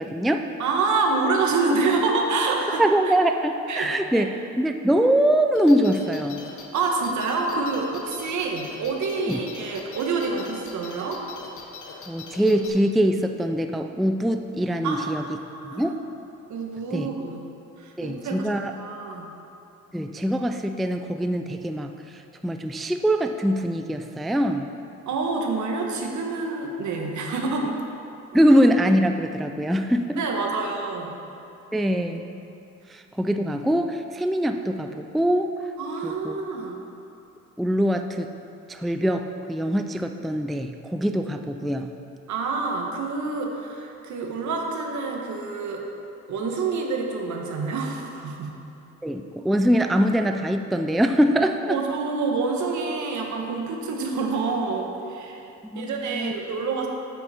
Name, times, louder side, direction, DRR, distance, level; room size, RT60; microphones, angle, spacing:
voice 1, 0.0-0.4 2.8-4.3 4.6-6.4 9.3-9.4 12.1-15.2 15.6-16.0 16.9-17.1 18.0-18.7 19.9-24.7 28.3-30.2 31.7-32.3 32.9-35.5 36.0-36.4 37.6-38.3 38.7-41.9 49.0-51.8 55.7-56.3, equal, ahead, 6 dB, 0.3 m, -23 dB
voice 2, 0.6-3.1 3.7-4.3 6.7-11.2 14.8-15.9 16.5-17.4 17.8-18.5 18.8-19.3 25.1-27.8 28.3-28.4 30.2-31.2 35.8-36.8 42.3-45.8 46.3-48.5 51.7-55.5 55.7-56.9, right 3 dB, 70° right, 1 dB, 1.4 m, -27 dB
sound 1, 5.5-12.7, left 5 dB, 75° left, 1.2 m, -42 dB
9.1 x 7.9 x 4.3 m, 2.8 s
cardioid pair, 90°, 30 cm